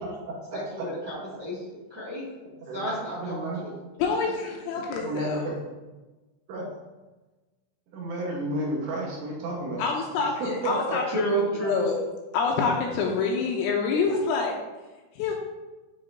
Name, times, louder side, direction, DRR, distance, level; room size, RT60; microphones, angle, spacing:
voice 1, 0.5-2.2 2.7-3.8 11.1-11.9, right 1 dB, 55° right, -8 dB, 1.1 m, -31 dB
voice 2, 3.2-3.7 5.0-5.5 6.5-6.6 7.9-9.8 10.4-11.0, right 1 dB, 70° right, -4 dB, 3.1 m, -31 dB
voice 3, 4.0-5.5 9.8-11.2 11.6-12.0 12.3-14.6 15.2-15.3, left 5 dB, 80° left, 0 dB, 2.8 m, -26 dB
9.5 x 4.1 x 2.6 m, 1.2 s
omnidirectional pair, 5.7 m